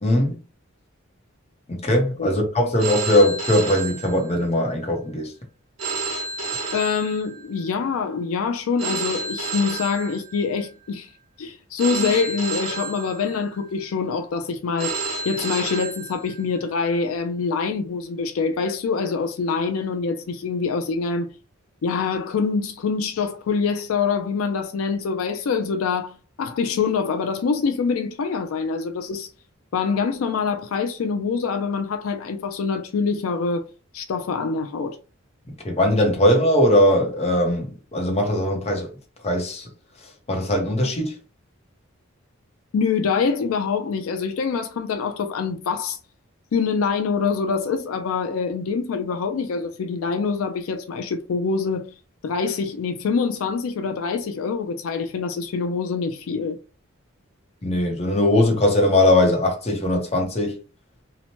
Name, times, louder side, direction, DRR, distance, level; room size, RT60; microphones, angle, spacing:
voice 1, 0.0-0.4 1.7-5.3 35.6-38.9 39.2-39.7 40.3-41.1 57.6-60.6, left 1 dB, 30° left, 0.7 m, -20 dB
Telephone, 2.8-4.7 5.8-7.7 8.8-10.7 11.8-13.7 14.8-16.7, right 4 dB, 70° right, 1.0 m, -31 dB
voice 2, 6.7-11.1 11.4-15.0 15.3-21.3 21.8-29.3 29.7-33.6 33.9-35.0 42.7-46.0 46.5-51.8 52.2-56.6, left 5 dB, 80° left, 0.4 m, -25 dB
2.9 x 2.1 x 2.8 m
head